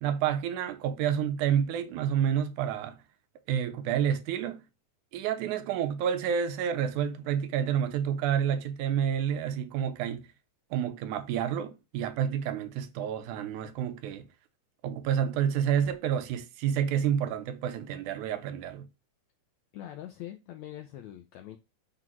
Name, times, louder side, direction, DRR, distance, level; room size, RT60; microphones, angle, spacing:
voice 1, 0.0-3.0 3.5-4.6 5.1-10.3 10.7-14.3 14.8-18.9, right 9 dB, 75° right, 2.1 m, -29 dB
voice 2, 19.7-21.6, left 12 dB, 75° left, 1.7 m, -43 dB
7.8 x 3.6 x 6.1 m
omnidirectional pair, 3.8 m